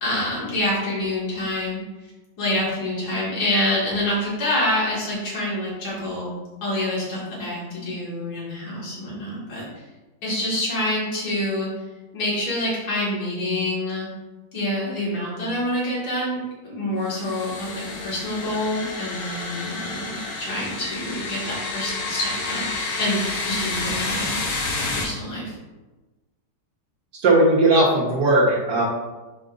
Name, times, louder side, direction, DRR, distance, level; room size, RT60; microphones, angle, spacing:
voice 1, 0.0-1.8 2.4-6.3 6.6-9.7 10.2-11.7 12.1-14.1 14.5-24.4 24.8-25.5, left 1 dB, 65° left, -7 dB, 2.4 m, -27 dB
sound 1, 17.1-25.0, left 3 dB, 80° left, 1.7 m, -29 dB
voice 2, 27.2-28.8, right 2 dB, 65° right, -6 dB, 1.6 m, -17 dB
7.4 x 5.2 x 2.5 m, 1.2 s
omnidirectional pair, 1.9 m